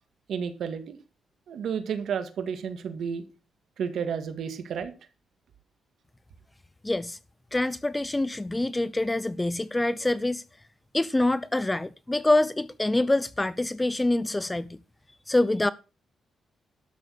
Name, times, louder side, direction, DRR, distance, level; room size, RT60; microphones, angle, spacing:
voice 1, 0.3-1.0 1.5-3.2 3.8-4.9, right 7 dB, 75° right, 1.9 m, -31 dB
voice 2, 6.8-7.2 7.5-10.4 10.9-14.8 15.3-15.7, left 2 dB, 15° left, 0.5 m, -25 dB
12.5 x 6.4 x 6.4 m
cardioid pair, 105°, 0 cm